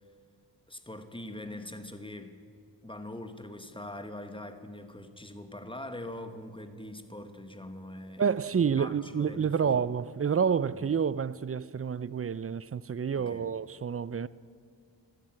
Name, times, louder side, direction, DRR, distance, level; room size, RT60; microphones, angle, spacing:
voice 1, 0.7-2.4 2.8-8.2 8.5-9.8 10.7-10.9 13.1-13.5, left 1 dB, 10° left, 1.3 m, -43 dB
voice 2, 8.2-14.3, right 6 dB, 35° right, 0.4 m, -29 dB
13.0 x 12.0 x 8.7 m
wide cardioid pair, 60°, 43 cm